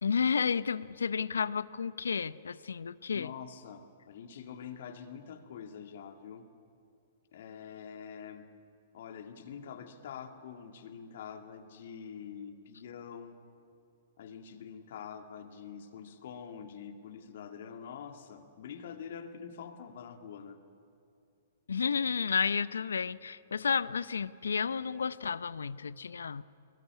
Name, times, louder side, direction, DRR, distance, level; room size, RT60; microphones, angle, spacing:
voice 1, 0.0-3.3 21.7-26.4, left 6 dB, 80° left, 17 dB, 0.6 m, -31 dB
voice 2, 3.1-6.5 7.3-8.5 8.9-13.4 14.2-20.6, left 7 dB, 60° left, 6 dB, 2.2 m, -45 dB
21.5 x 21.5 x 9.8 m, 2.5 s
hypercardioid pair, 115°, 0 cm